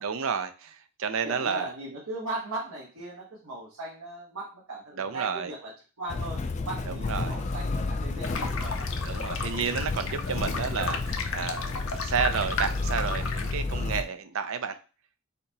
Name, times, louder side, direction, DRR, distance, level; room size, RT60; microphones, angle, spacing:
voice 1, 0.0-1.7 5.0-5.5 6.9-7.4 9.0-14.8, right 6 dB, 65° right, 10 dB, 0.5 m, -31 dB
voice 2, 1.2-5.7 6.0-8.9, right 2 dB, 80° right, -5 dB, 1.3 m, -38 dB
Motor vehicle (road), 6.1-14.0, left 3 dB, 30° left, 0.3 m, -31 dB
sound 1, 8.2-13.5, left 4 dB, 60° left, 0.7 m, -35 dB
4.2 x 2.9 x 4.0 m, 0.35 s
head